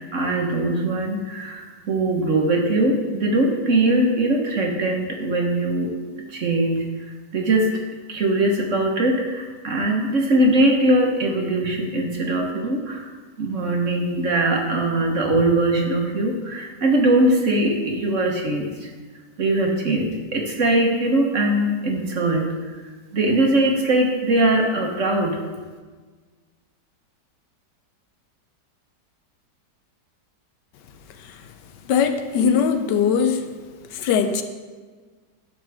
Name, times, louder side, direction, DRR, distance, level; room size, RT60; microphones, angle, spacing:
voice 1, 0.1-5.9 6.3-6.8 7.3-7.7 8.1-13.1 13.4-18.7 19.4-22.5 23.1-25.4, right 1 dB, 50° right, 1 dB, 1.3 m, -21 dB
voice 2, 31.9-33.5 33.9-34.4, left 6 dB, 80° left, 8 dB, 1.3 m, -21 dB
11.5 x 6.7 x 3.4 m, 1.4 s
omnidirectional pair, 1.9 m